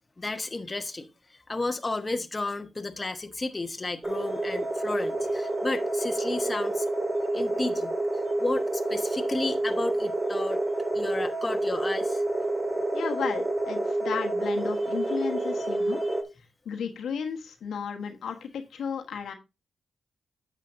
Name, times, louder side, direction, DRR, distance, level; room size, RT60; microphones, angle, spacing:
voice 1, 0.2-1.1 1.5-6.9 7.3-7.9 8.4-10.6 10.9-12.2 15.4-16.2, left 2 dB, 30° left, 1.1 m, -33 dB
sound 1, 4.0-16.2, right 2 dB, 30° right, 2.1 m, -28 dB
voice 2, 12.9-16.0 16.6-19.3, left 7 dB, 80° left, 1.2 m, -34 dB
9.7 x 7.3 x 2.6 m
cardioid pair, 55°, 0 cm